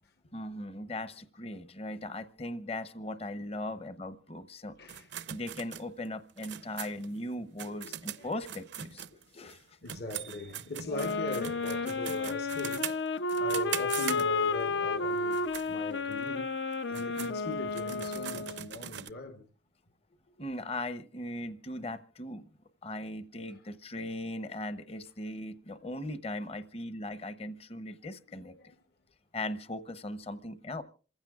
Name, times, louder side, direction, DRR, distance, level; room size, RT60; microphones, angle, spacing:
voice 1, 0.3-4.8 5.3-9.6 16.9-17.0 20.4-22.5 22.8-28.6 29.3-30.8, left 1 dB, 35° left, 0.8 m, -39 dB
voice 2, 4.8-5.1 7.4-8.3 9.3-19.5 23.5-23.6 25.7-26.1 28.3-28.8, left 2 dB, 60° left, 1.0 m, -41 dB
sound 1, 4.9-9.6 9.9-14.6 15.2-15.7 16.1-16.2 16.7-19.1, right 10 dB, 75° right, 0.6 m, -41 dB
sound 2, 10.8-18.7, left 3 dB, 80° left, 0.6 m, -32 dB
27.5 x 15.5 x 2.4 m
head